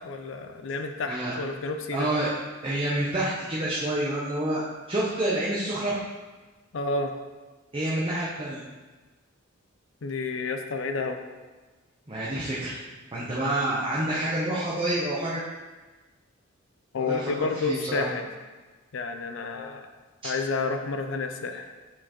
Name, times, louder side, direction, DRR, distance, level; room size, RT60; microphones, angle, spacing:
voice 1, 0.0-2.1 6.7-7.1 10.0-11.2 16.9-18.3 18.9-19.9 20.2-21.7, left 3 dB, 65° left, 6 dB, 0.5 m, -30 dB
voice 2, 1.1-1.4 1.9-2.3 2.6-6.0 7.7-8.6 12.1-12.8 13.1-15.4 17.0-18.1 20.2-20.3, right 1 dB, 25° right, -7 dB, 0.7 m, -28 dB
7.4 x 4.3 x 2.9 m, 1.3 s
head